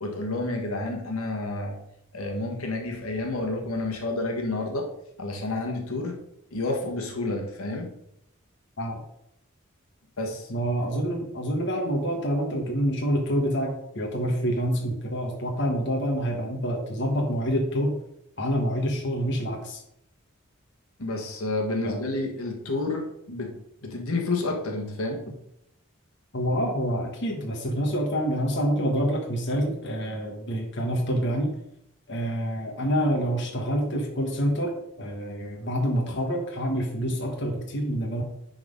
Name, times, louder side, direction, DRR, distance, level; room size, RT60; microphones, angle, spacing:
voice 1, 0.0-1.8 2.1-4.9 5.2-6.2 6.5-7.9 10.2-10.5 21.0-23.6 23.8-25.2, left 2 dB, 85° left, 1 dB, 1.6 m, -30 dB
voice 2, 10.5-17.9 18.4-19.8 21.8-22.1 25.3-25.4 26.3-31.5 32.1-38.2, equal, 55° left, 1 dB, 1.4 m, -27 dB
10.5 x 4.0 x 5.3 m, 0.78 s
head